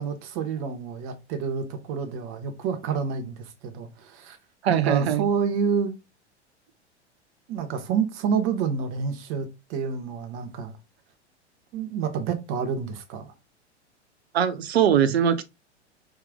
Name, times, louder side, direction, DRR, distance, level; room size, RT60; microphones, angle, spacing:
voice 1, 0.0-4.4 4.7-5.9 7.5-10.7 11.7-13.3, right 6 dB, 40° right, 1.2 m, -28 dB
voice 2, 4.6-5.3 14.3-15.4, right 9 dB, 60° right, 0.9 m, -21 dB
5.1 x 4.5 x 2.3 m
figure-of-eight pair, 90°, 35 cm